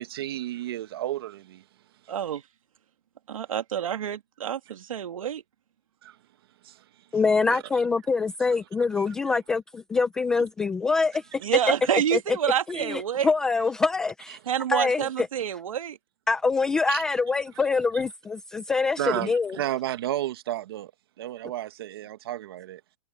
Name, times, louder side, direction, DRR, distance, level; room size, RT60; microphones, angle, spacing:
voice 1, 0.0-1.6 6.0-6.2 6.6-6.8 7.5-7.6 9.0-9.1 16.9-17.0 19.0-20.9 21.2-22.8, right 13 dB, 40° right, 1.6 m, -32 dB
voice 2, 2.1-2.4 3.3-5.4 11.4-13.3 14.5-16.0, right 9 dB, 65° right, 2.3 m, -27 dB
voice 3, 7.1-11.2 12.1-12.2 12.7-14.4 14.7-15.3 16.3-19.6, left 4 dB, 5° left, 0.4 m, -25 dB
hypercardioid pair, 175°, 19 cm